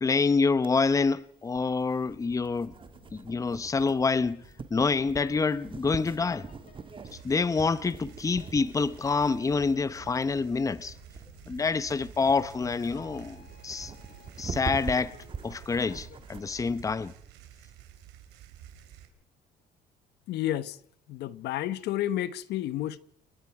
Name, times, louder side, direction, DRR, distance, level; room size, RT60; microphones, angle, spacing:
voice 1, 0.0-2.7 3.1-4.4 4.7-6.5 7.2-10.9 11.5-13.9 14.4-15.1 15.4-17.1, left 4 dB, 20° left, 0.8 m, -27 dB
sound 1, 0.6-16.9, right 5 dB, 30° right, 1.7 m, -44 dB
sound 2, 2.0-16.3, left 5 dB, 60° left, 4.1 m, -56 dB
sound 3, 7.1-19.1, right 11 dB, 85° right, 4.0 m, -51 dB
voice 2, 20.3-20.8 21.1-23.0, left 13 dB, 75° left, 1.0 m, -31 dB
29.0 x 20.0 x 4.8 m
cardioid pair, 110°, 17 cm